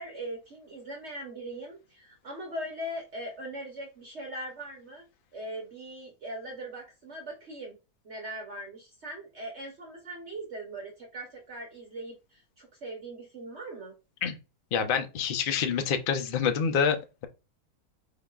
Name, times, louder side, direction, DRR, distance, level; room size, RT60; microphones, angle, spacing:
voice 1, 0.0-5.0 5.3-7.8 8.0-13.9, right 1 dB, 50° right, 1.1 m, -40 dB
voice 2, 14.7-17.3, left 7 dB, 55° left, 0.6 m, -27 dB
4.5 x 3.7 x 2.4 m
omnidirectional pair, 1.7 m